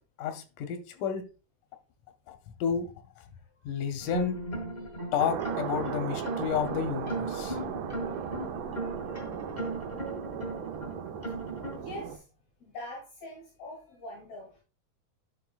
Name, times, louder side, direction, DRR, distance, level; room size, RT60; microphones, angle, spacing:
voice 1, 0.2-1.2 2.3-3.3 3.6-4.4 5.1-7.6, left 8 dB, 90° left, 7 dB, 2.4 m, -31 dB
sound 1, 4.0-11.8, right 1 dB, 20° left, 1.1 m, -37 dB
sound 2, 5.2-12.2, right 8 dB, 80° right, 2.2 m, -36 dB
voice 2, 7.8-9.2 10.1-10.2 10.6-10.7 11.7-12.2 12.6-14.6, left 1 dB, 65° left, -2 dB, 3.4 m, -45 dB
11.0 x 4.5 x 2.3 m, 0.32 s
omnidirectional pair, 3.5 m